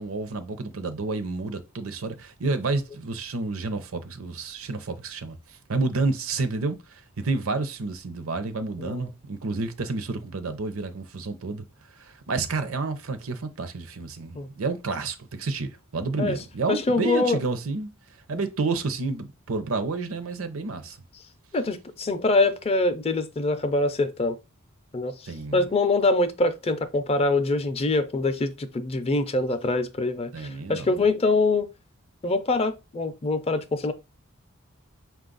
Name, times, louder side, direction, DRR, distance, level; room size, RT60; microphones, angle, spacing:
voice 1, 0.0-11.7 12.0-17.9 18.3-21.0 25.3-25.7 30.3-31.0, right 3 dB, 70° right, 0.7 m, -30 dB
voice 2, 16.7-17.4 18.3-18.4 21.5-24.4 24.9-25.1 25.5-30.3 30.7-31.7 32.2-33.9, left 2 dB, 30° left, 0.4 m, -24 dB
5.2 x 2.4 x 3.8 m
head